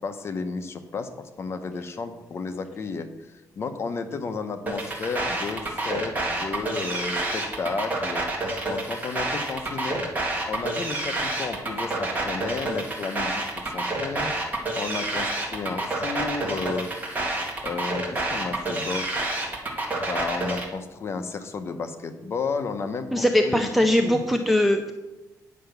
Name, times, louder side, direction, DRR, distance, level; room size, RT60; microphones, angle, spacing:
voice 1, 0.0-8.2 8.7-10.1 10.5-16.9 17.6-19.2 20.0-23.7 24.0-24.3, left 4 dB, 40° left, 8 dB, 0.8 m, -32 dB
sound 1, 4.7-20.7, right 2 dB, 25° right, 1.7 m, -28 dB
voice 2, 23.1-24.9, left 1 dB, ahead, 4 dB, 0.5 m, -21 dB
9.7 x 5.8 x 6.7 m, 1.1 s
cardioid pair, 165°, 7 cm